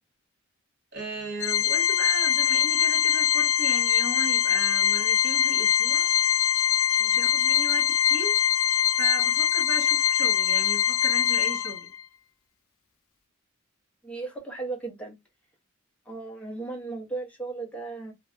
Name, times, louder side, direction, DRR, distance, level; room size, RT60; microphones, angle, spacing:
voice 1, 0.9-6.1 7.0-8.4 9.0-11.9, right 3 dB, 50° right, 1.4 m, -37 dB
Organ, 1.4-12.0, left 9 dB, 70° left, 0.4 m, -23 dB
voice 2, 14.0-15.1 16.1-18.1, right 3 dB, 5° left, 0.8 m, -36 dB
2.6 x 2.1 x 2.4 m
head